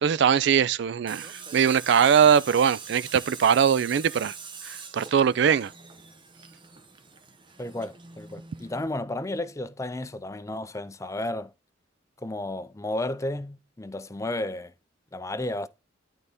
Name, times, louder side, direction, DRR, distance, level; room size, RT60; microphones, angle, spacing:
voice 1, 0.0-4.3 4.6-5.7, right 7 dB, 60° right, 0.3 m, -21 dB
Tools, 1.1-8.9, right 5 dB, 25° right, 0.8 m, -43 dB
voice 2, 7.6-11.5 12.2-14.7 15.1-15.7, left 1 dB, 15° left, 0.5 m, -33 dB
11.0 x 4.0 x 3.5 m
head